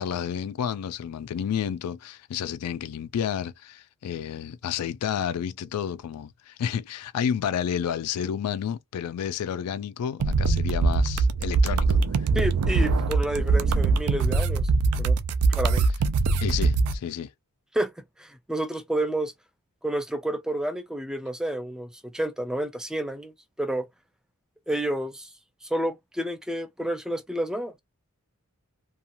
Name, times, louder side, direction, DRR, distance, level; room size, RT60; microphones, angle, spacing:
voice 1, 0.0-12.0 16.3-17.3, left 8 dB, 85° left, 0.3 m, -30 dB
sound 1, 10.2-17.0, right 4 dB, 75° right, 0.4 m, -22 dB
voice 2, 12.3-14.7 15.0-15.2 15.5-15.9 17.7-17.9 18.2-19.3 19.8-23.3 23.6-23.9 24.7-25.3 25.7-27.7, right 1 dB, 5° right, 0.3 m, -30 dB
2.9 x 2.2 x 2.5 m
head